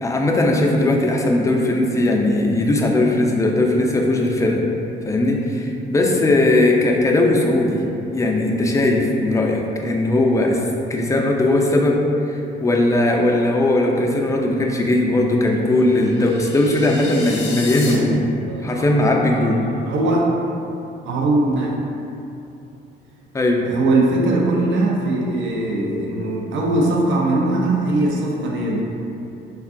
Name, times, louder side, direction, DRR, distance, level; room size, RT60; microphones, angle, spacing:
voice 1, 0.0-4.6 5.0-7.9 8.1-10.6 10.9-12.0 12.3-18.3 18.6-19.6 23.3-23.6, left 2 dB, 15° left, 0 dB, 0.3 m, -18 dB
sound 1, 15.9-18.0, left 4 dB, 70° left, 0.6 m, -33 dB
voice 2, 18.5-19.5 19.8-20.3 21.0-21.7 23.7-28.8, right 2 dB, 70° right, -2 dB, 0.6 m, -20 dB
3.4 x 2.2 x 2.5 m, 2.7 s
cardioid pair, 90°, 20 cm